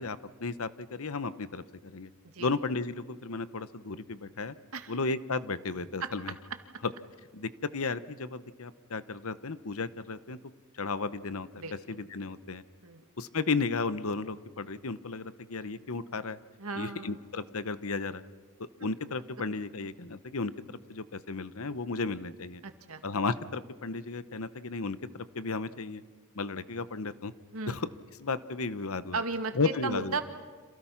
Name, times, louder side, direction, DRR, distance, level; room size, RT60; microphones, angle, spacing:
voice 1, 0.0-2.1 2.4-4.5 4.9-6.3 6.8-6.9 7.3-10.4 10.7-12.6 13.2-16.4 16.8-18.2 18.8-22.6 23.0-26.0 26.3-27.3 27.7-27.9 28.2-29.2 29.5-30.2, left 4 dB, 70° left, 14 dB, 0.9 m, -34 dB
voice 2, 16.6-17.2 22.6-23.0 27.5-27.8 29.1-30.2, right 4 dB, 75° right, 7 dB, 2.1 m, -35 dB
30.0 x 27.0 x 5.9 m, 1.4 s
head